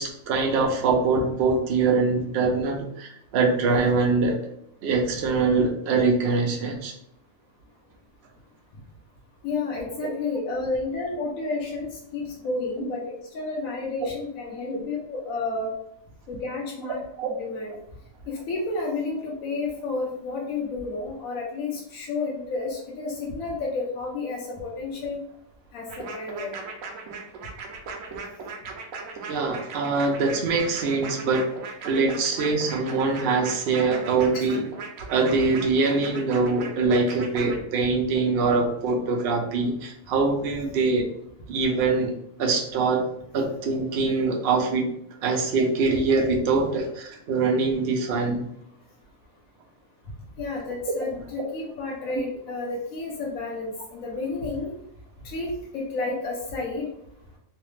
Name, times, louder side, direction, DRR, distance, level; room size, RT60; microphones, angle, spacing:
voice 1, 0.0-4.4 4.8-6.9 10.0-10.1 14.7-14.8 17.2-17.3 29.2-31.5 31.8-34.7 35.1-41.1 41.5-42.1 42.4-43.0 43.3-44.9 45.2-48.4 50.9-51.0, right 3 dB, 60° right, 0 dB, 0.7 m, -23 dB
voice 2, 9.4-15.7 16.3-17.7 18.3-25.2 25.7-26.5 34.3-34.4 50.4-54.7 55.2-56.9, left 3 dB, 85° left, -3 dB, 1.1 m, -31 dB
sound 1, 25.9-37.6, right 4 dB, 80° right, 1.0 m, -38 dB
3.1 x 2.0 x 3.1 m, 0.73 s
omnidirectional pair, 1.4 m